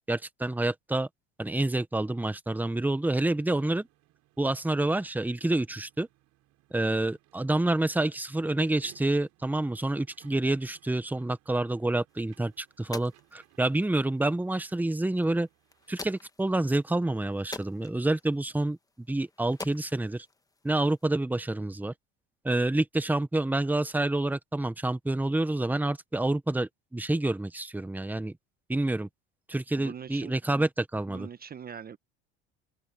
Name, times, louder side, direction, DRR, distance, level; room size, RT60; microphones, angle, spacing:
voice 1, 0.1-1.1 1.4-3.9 4.4-6.1 6.7-15.5 15.9-18.8 19.1-20.3 20.6-21.9 22.4-28.3 28.7-29.1 29.5-31.3, right 2 dB, 5° right, 1.3 m, -28 dB
sound 1, 2.6-16.0, right 16 dB, 60° right, 6.6 m, -64 dB
sound 2, 12.1-21.1, left 3 dB, 10° left, 1.5 m, -48 dB
voice 2, 29.7-30.3 31.1-32.0, right 7 dB, 30° right, 1.2 m, -42 dB
open air
hypercardioid pair, 85°, 31 cm